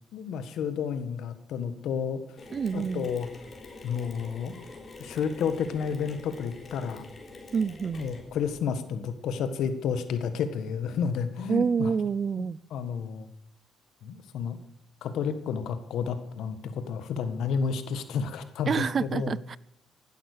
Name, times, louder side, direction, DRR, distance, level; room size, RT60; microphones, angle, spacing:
voice 1, 0.1-2.2 2.7-3.3 3.8-4.6 5.0-7.1 8.0-11.9 12.4-13.3 14.0-14.6 15.0-19.4, left 6 dB, 80° left, 1.6 m, -31 dB
Mechanisms, 2.4-8.6, left 3 dB, 40° left, 3.9 m, -46 dB
voice 2, 2.5-3.1 7.5-8.1 11.5-12.6 18.7-19.6, right 6 dB, 45° right, 0.5 m, -27 dB
16.0 x 11.5 x 6.7 m
cardioid pair, 90°, 0 cm